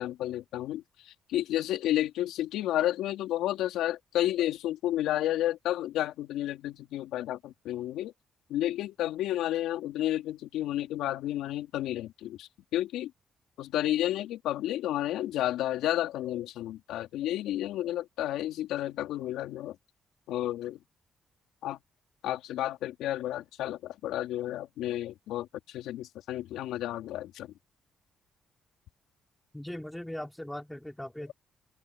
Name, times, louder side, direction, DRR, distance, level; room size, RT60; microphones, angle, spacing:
voice 1, 0.0-8.1 8.5-13.1 13.6-19.8 20.3-20.8 21.6-21.8 22.2-27.5, left 13 dB, 90° left, 3.9 m, -31 dB
voice 2, 29.5-31.3, left 1 dB, 5° left, 4.4 m, -39 dB
open air
cardioid pair, 90°, 0 cm